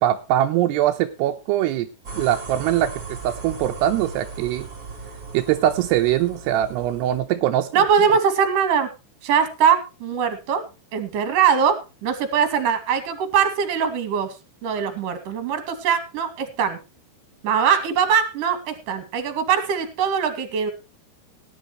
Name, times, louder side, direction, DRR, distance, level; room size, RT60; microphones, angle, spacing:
voice 1, 0.0-1.9 2.2-2.9 3.2-4.7 5.3-7.8, right 12 dB, 85° right, 5 dB, 2.9 m, -22 dB
sound 1, 2.0-7.2, right 4 dB, 25° right, 5.8 m, -37 dB
voice 2, 7.7-8.9 9.2-10.6 10.9-14.3 14.6-16.8 17.4-20.7, right 7 dB, 55° right, 8 dB, 3.6 m, -21 dB
18.0 x 11.0 x 3.1 m, 0.30 s
omnidirectional pair, 4.8 m